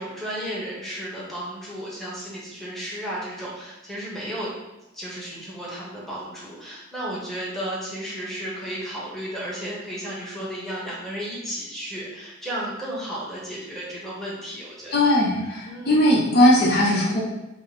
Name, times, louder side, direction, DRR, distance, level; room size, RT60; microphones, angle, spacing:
voice 1, 0.0-4.5 4.9-15.0 15.7-16.0, equal, ahead, -7 dB, 1.0 m, -33 dB
voice 2, 14.9-17.2, left 1 dB, 50° left, -4 dB, 0.8 m, -19 dB
4.9 x 2.1 x 3.9 m, 0.96 s
head